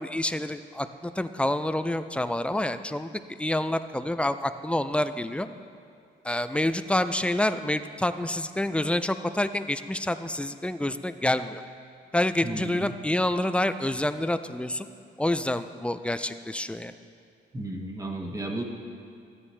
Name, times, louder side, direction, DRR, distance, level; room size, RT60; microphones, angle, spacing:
voice 1, 0.0-3.1 3.4-5.5 6.2-11.6 12.1-14.9 15.2-16.9, left 1 dB, 5° left, 11 dB, 0.4 m, -27 dB
voice 2, 12.4-12.9 17.5-18.6, right 1 dB, 15° right, 1 dB, 1.4 m, -33 dB
13.5 x 9.9 x 3.2 m, 2.4 s
cardioid pair, 90°, 20 cm